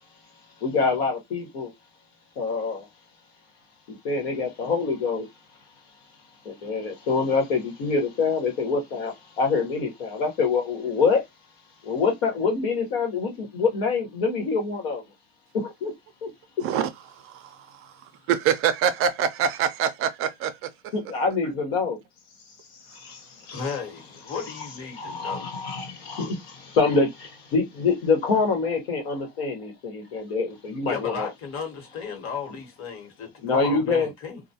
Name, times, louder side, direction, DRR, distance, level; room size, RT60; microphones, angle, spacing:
voice 1, 0.6-1.7 2.4-2.9 3.9-5.3 6.4-11.2 11.8-15.0 15.5-15.9 16.2-16.3 20.9-22.0 22.9-31.3 32.5-32.6 33.4-34.1, left 4 dB, 75° left, 1.1 m, -26 dB
voice 2, 17.2-17.6 18.3-20.6, right 8 dB, 45° right, 0.5 m, -24 dB
voice 3, 23.5-25.5 30.9-34.4, left 5 dB, 45° left, 1.2 m, -35 dB
2.2 x 2.2 x 2.7 m
supercardioid pair, 105°, 31 cm